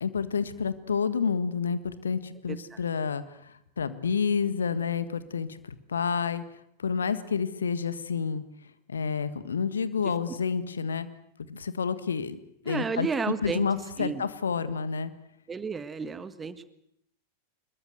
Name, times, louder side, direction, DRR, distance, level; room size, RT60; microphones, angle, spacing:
voice 1, 0.0-6.4 6.8-8.4 8.9-11.1 11.5-12.4 12.6-13.1 13.4-15.1, left 6 dB, 70° left, 14 dB, 1.6 m, -29 dB
voice 2, 12.7-13.7 14.0-14.2 15.5-16.7, right 5 dB, 15° right, 13 dB, 1.6 m, -32 dB
24.0 x 22.0 x 8.0 m, 0.74 s
figure-of-eight pair, 90°, 0 cm